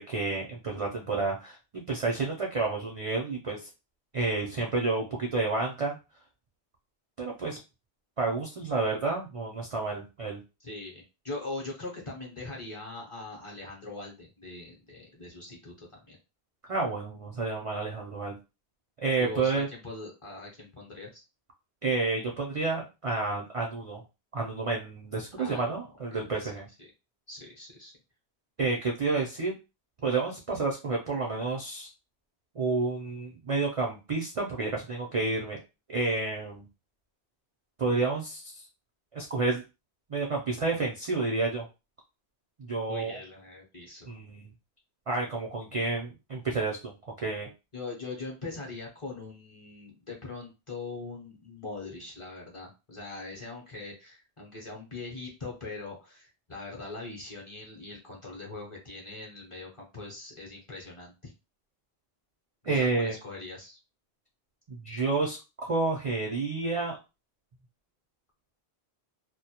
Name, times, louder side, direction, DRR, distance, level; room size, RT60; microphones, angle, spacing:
voice 1, 0.0-1.6 1.9-3.6 4.1-6.0 7.2-7.6 8.2-10.4 16.7-18.4 19.0-19.7 21.8-24.0 24.3-26.7 28.6-29.5 30.0-31.9 32.6-35.6 35.9-36.6 37.8-38.6 39.1-39.6 40.1-41.7 42.6-43.2 44.1-44.5 45.1-46.9 47.2-47.5 62.6-63.1 64.7-67.0, right 3 dB, 50° right, -1 dB, 0.4 m, -30 dB
voice 2, 10.6-16.2 19.2-21.2 25.4-25.8 26.1-26.5 26.8-26.9 27.3-27.9 42.9-44.1 47.7-61.3 62.6-63.8, left 3 dB, 35° left, -2 dB, 0.6 m, -41 dB
2.1 x 2.1 x 2.7 m, 0.28 s
omnidirectional pair, 1.1 m